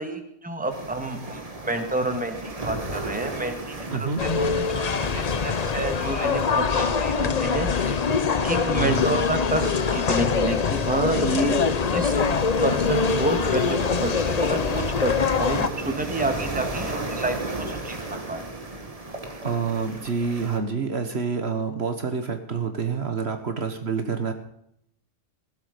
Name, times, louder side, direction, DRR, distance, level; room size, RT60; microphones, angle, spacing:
voice 1, 0.0-2.4 2.6-8.0 8.4-11.6 11.9-12.2 12.6-17.4 17.7-18.0 18.3-18.4, right 2 dB, 5° right, 6 dB, 1.7 m, -29 dB
sound 1, 0.7-20.6, right 2 dB, 30° right, 1.7 m, -36 dB
voice 2, 3.9-4.2 8.8-9.1 19.4-24.3, right 5 dB, 60° right, 6 dB, 1.6 m, -27 dB
sound 2, 4.2-15.7, left 5 dB, 40° left, 0.7 m, -23 dB
16.5 x 11.5 x 5.2 m, 0.75 s
omnidirectional pair, 1.3 m